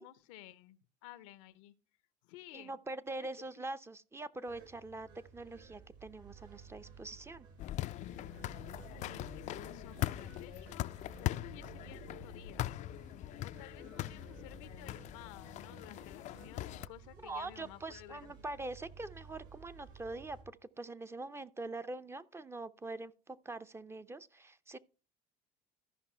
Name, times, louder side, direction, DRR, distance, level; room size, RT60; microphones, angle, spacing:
voice 1, 0.0-1.7 2.2-2.8 3.2-3.3 3.6-3.7 8.9-12.7 13.4-18.3, left 15 dB, 85° left, 0.7 m, -54 dB
voice 2, 2.5-7.5 17.2-24.8, right 2 dB, 15° right, 0.6 m, -44 dB
sound 1, 4.5-20.4, right 6 dB, 65° right, 5.7 m, -55 dB
sound 2, 7.6-16.9, left 15 dB, 50° left, 0.4 m, -41 dB
13.5 x 5.4 x 4.4 m
supercardioid pair, 95°, 15 cm